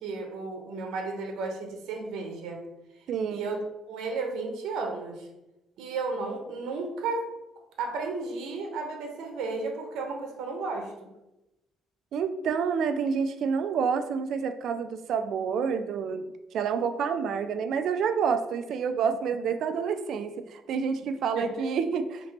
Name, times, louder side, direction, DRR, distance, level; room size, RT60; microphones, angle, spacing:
voice 1, 0.0-2.6 3.3-3.6 3.9-5.3 5.8-7.3 7.8-10.9 21.4-21.5, right 3 dB, 80° right, 3 dB, 0.8 m, -33 dB
voice 2, 3.1-3.4 12.1-22.3, right 6 dB, 55° right, 9 dB, 0.3 m, -28 dB
3.4 x 2.9 x 4.1 m, 0.95 s
cardioid pair, 160°, 0 cm